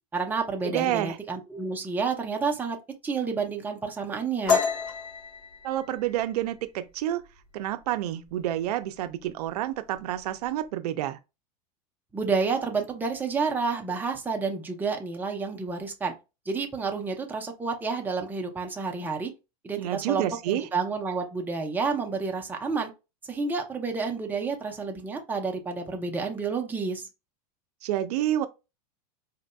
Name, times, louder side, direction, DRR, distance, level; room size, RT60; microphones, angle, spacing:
voice 1, 0.1-2.8 3.0-4.6 12.1-16.1 16.5-19.3 19.6-22.9 23.3-27.1, right 4 dB, 10° right, 0.7 m, -30 dB
voice 2, 0.6-1.2 5.6-7.2 7.5-11.2 19.8-20.7 27.8-28.5, right 12 dB, 80° right, 0.5 m, -29 dB
sound 1, 4.5-7.9 8.2-8.6 8.9-9.5 9.7-10.5, left 5 dB, 45° left, 1.2 m, -30 dB
4.1 x 2.6 x 2.2 m
supercardioid pair, 130°, 20 cm